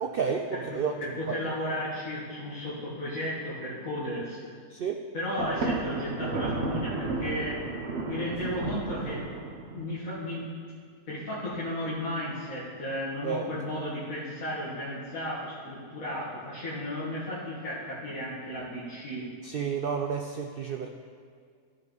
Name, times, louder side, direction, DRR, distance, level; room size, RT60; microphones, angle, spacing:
voice 1, 0.0-1.4 4.7-5.0 13.2-13.4 19.4-20.9, right 6 dB, 80° right, 3 dB, 0.5 m, -31 dB
voice 2, 0.7-4.4 5.1-7.6 8.0-9.3 9.7-10.5 11.1-19.2, left 1 dB, 65° left, -10 dB, 2.1 m, -34 dB
Thunder, 5.4-9.9, right 3 dB, 50° right, 1.2 m, -33 dB
13.5 x 5.3 x 3.9 m, 2.1 s
omnidirectional pair, 1.6 m